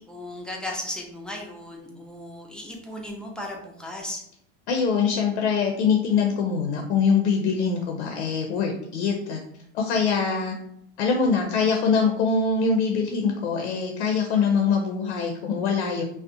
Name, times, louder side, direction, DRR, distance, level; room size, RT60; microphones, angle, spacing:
voice 1, 0.0-4.2, left 1 dB, ahead, -1 dB, 0.4 m, -36 dB
voice 2, 4.7-9.4 9.7-10.5 11.0-16.0, left 5 dB, 85° left, 1 dB, 0.5 m, -23 dB
2.5 x 2.1 x 2.5 m, 0.73 s
hypercardioid pair, 100°, 33 cm